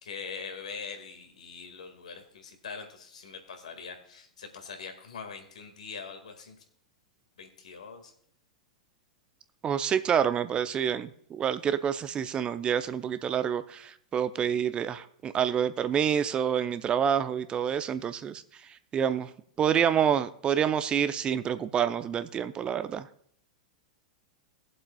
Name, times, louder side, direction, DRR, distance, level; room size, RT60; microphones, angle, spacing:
voice 1, 0.0-6.6 7.4-8.1, left 5 dB, 75° left, 5 dB, 1.9 m, -42 dB
voice 2, 9.6-19.3 19.6-23.1, right 8 dB, 25° right, 12 dB, 0.6 m, -28 dB
20.0 x 7.6 x 2.3 m, 0.65 s
figure-of-eight pair, 100°, 4 cm